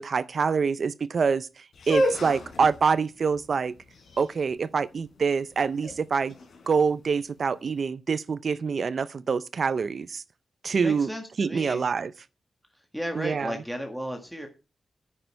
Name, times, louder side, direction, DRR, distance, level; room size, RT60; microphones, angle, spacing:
voice 1, 0.0-1.5 1.9-3.7 4.2-6.3 6.7-10.2 10.6-11.1 11.4-12.1 13.2-13.5, right 5 dB, 50° right, 0.5 m, -25 dB
sound 1, 1.7-7.6, equal, 75° left, 4.2 m, -32 dB
voice 2, 10.7-11.9 12.7-14.5, equal, ahead, 1.8 m, -34 dB
9.9 x 9.2 x 4.4 m
wide cardioid pair, 130°, 0 cm